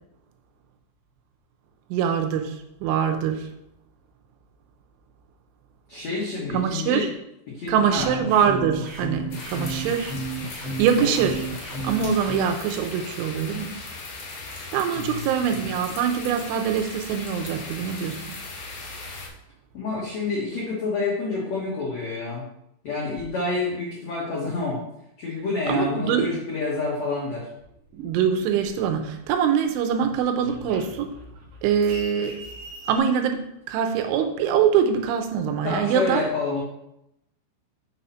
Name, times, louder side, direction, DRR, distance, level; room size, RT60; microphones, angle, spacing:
voice 1, 1.9-3.5 6.5-7.1 7.7-10.1 10.8-11.5 11.8-13.7 14.5-18.4 25.7-26.3 28.0-31.1 31.6-32.4 32.9-36.2, right 7 dB, 85° right, 5 dB, 3.2 m, -24 dB
voice 2, 5.9-7.1 7.5-8.1 11.0-11.1 14.9-15.3 19.7-22.4 22.8-24.8 25.2-27.5 35.6-36.6, left 3 dB, 80° left, -5 dB, 1.5 m, -28 dB
sound 1, 8.0-12.4, right 2 dB, 50° right, 2.0 m, -32 dB
sound 2, 9.3-19.3, left 3 dB, 50° left, 2.4 m, -38 dB
sound 3, 27.6-29.3 29.6-33.0, right 1 dB, 65° right, 2.3 m, -42 dB
6.9 x 4.2 x 5.5 m, 0.82 s
omnidirectional pair, 5.5 m